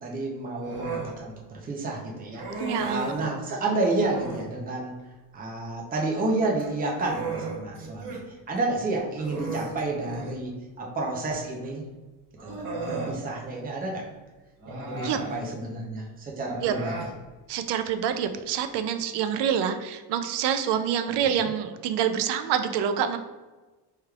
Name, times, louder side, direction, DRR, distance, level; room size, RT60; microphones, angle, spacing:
voice 1, 0.0-4.9 5.3-8.2 8.5-11.8 12.4-14.1 14.7-16.9 21.3-21.5, right 2 dB, 20° right, -2 dB, 0.6 m, -30 dB
Human voice, 0.6-1.1 2.3-3.2 4.0-4.5 6.4-8.2 8.6-8.7 9.2-10.4 11.6-11.7 12.4-13.2 14.6-15.4 16.5-17.1, right 3 dB, 50° right, 1.4 m, -35 dB
voice 2, 2.6-3.3 15.0-15.2 16.6-16.7 17.5-23.2, right 8 dB, 70° right, 9 dB, 0.5 m, -27 dB
4.7 x 3.2 x 2.3 m, 1.2 s
cardioid pair, 155°, 42 cm